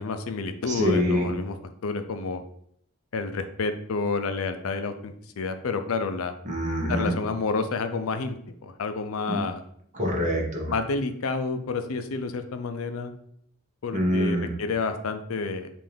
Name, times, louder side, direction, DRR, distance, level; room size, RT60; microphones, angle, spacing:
voice 1, 0.0-1.5 1.8-2.4 3.1-6.3 6.9-8.4 8.6-9.6 10.7-13.1 13.8-15.7, left 4 dB, 75° left, 8 dB, 0.5 m, -29 dB
voice 2, 0.7-1.3 6.4-7.1 9.3-9.4 9.9-10.7 13.9-14.5, equal, 35° right, 0 dB, 1.0 m, -25 dB
5.5 x 2.5 x 3.4 m, 0.68 s
head